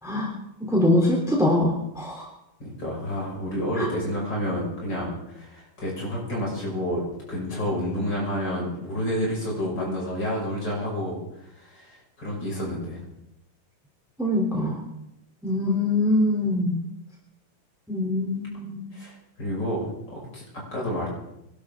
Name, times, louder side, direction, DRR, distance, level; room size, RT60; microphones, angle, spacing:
voice 1, 0.6-2.3 3.8-3.9 14.2-14.8 15.4-16.8 17.9-18.8, left 1 dB, ahead, -2 dB, 3.1 m, -23 dB
voice 2, 2.6-11.2 11.6-13.0 18.9-20.4 20.7-21.1, equal, 50° left, -3 dB, 6.7 m, -29 dB
25.0 x 12.5 x 3.8 m, 0.86 s
omnidirectional pair, 2.4 m